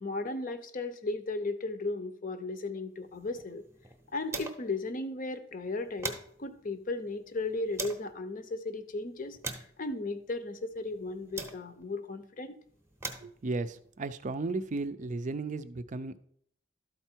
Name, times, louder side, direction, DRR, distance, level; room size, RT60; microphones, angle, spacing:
voice 1, 0.0-3.6 4.1-6.1 6.4-9.4 9.8-12.6, left 2 dB, 45° left, 10 dB, 0.7 m, -35 dB
sound 1, 3.0-4.8 5.1-5.2 5.6-8.1 8.7-12.0 12.7-14.9, right 3 dB, 15° right, 0.8 m, -43 dB
voice 2, 13.2-16.2, right 3 dB, 40° right, 11 dB, 0.5 m, -35 dB
12.0 x 4.5 x 4.4 m, 0.64 s
head